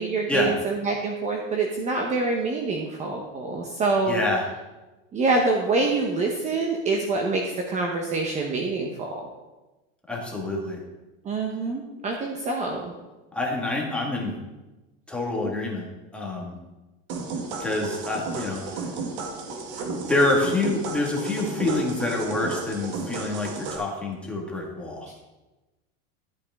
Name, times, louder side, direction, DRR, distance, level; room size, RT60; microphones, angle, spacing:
voice 1, 0.0-4.2 5.1-9.2 11.2-12.9, right 3 dB, 25° right, 1 dB, 1.0 m, -26 dB
voice 2, 4.1-4.5 10.1-10.8 13.3-14.3 15.1-15.9 16.1-16.6 17.6-18.9 20.1-25.1, left 2 dB, 5° left, -2 dB, 1.8 m, -27 dB
sound 1, 17.1-23.8, right 3 dB, 65° right, 2.3 m, -33 dB
13.5 x 8.4 x 3.6 m, 1.1 s
supercardioid pair, 160°, 30 cm